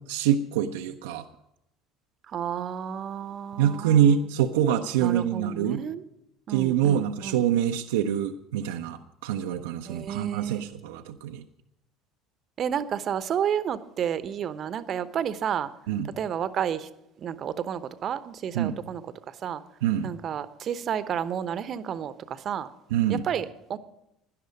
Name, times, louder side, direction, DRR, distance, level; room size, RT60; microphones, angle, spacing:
voice 1, 0.1-1.3 3.6-5.8 6.5-11.4 15.9-16.1 18.5-18.8 19.8-20.1 22.9-23.2, right 9 dB, 70° right, 0.6 m, -25 dB
voice 2, 2.3-4.3 5.0-6.0 6.5-7.4 9.9-10.7 12.6-15.7 16.0-16.9 17.2-19.6 20.0-22.7 23.1-23.8, right 8 dB, 40° right, 0.9 m, -31 dB
17.0 x 11.5 x 5.2 m
figure-of-eight pair, 60°, 0 cm